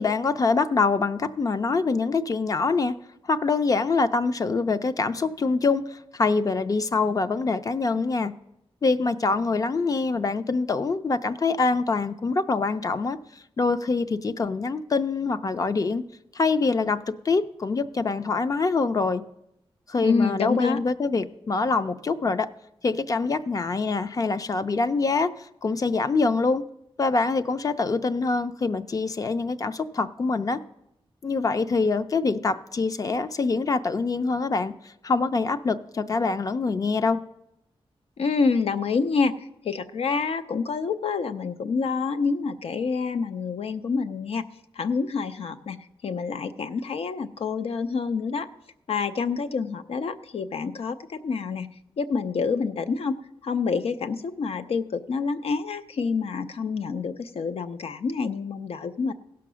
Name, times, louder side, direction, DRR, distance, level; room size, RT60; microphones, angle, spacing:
voice 1, 0.0-3.0 3.3-8.3 8.8-13.2 13.6-16.0 16.3-19.2 19.9-22.5 22.8-25.3 25.6-26.6 27.0-30.6 31.2-34.7 35.0-37.2, left 4 dB, 35° left, 11 dB, 0.4 m, -24 dB
voice 2, 20.0-20.8 38.2-39.3 39.6-44.4 44.8-45.8 46.0-48.5 48.9-51.7 52.0-53.1 53.4-59.1, left 5 dB, 85° left, 10 dB, 0.6 m, -27 dB
16.0 x 5.8 x 6.2 m, 0.83 s
wide cardioid pair, 160°, 10 cm